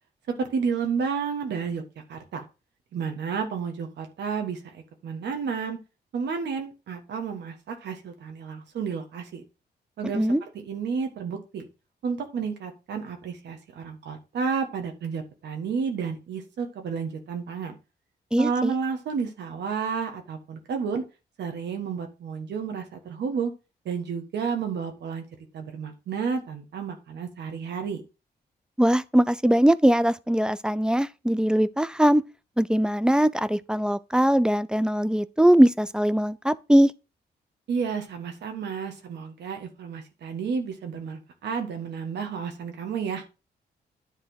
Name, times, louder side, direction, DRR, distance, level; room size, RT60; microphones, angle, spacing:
voice 1, 0.3-1.8 2.1-2.4 2.9-5.8 6.1-9.4 10.0-10.3 10.7-11.7 12.0-17.7 18.4-21.0 21.4-23.5 23.8-25.2 25.5-28.0 37.7-43.2, right 6 dB, 80° right, 1.5 m, -31 dB
voice 2, 18.3-18.7 28.8-32.2 32.6-36.9, equal, 5° right, 0.5 m, -21 dB
9.9 x 3.4 x 6.4 m
cardioid pair, 90°, 18 cm